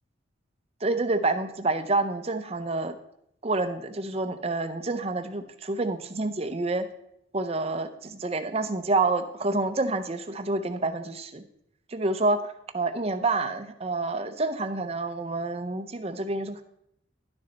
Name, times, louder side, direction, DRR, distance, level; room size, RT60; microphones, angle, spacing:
voice 1, 0.8-3.0 3.4-6.9 7.3-11.4 11.9-16.6, right 2 dB, 30° right, 9 dB, 0.6 m, -28 dB
11.0 x 6.4 x 4.0 m, 0.76 s
head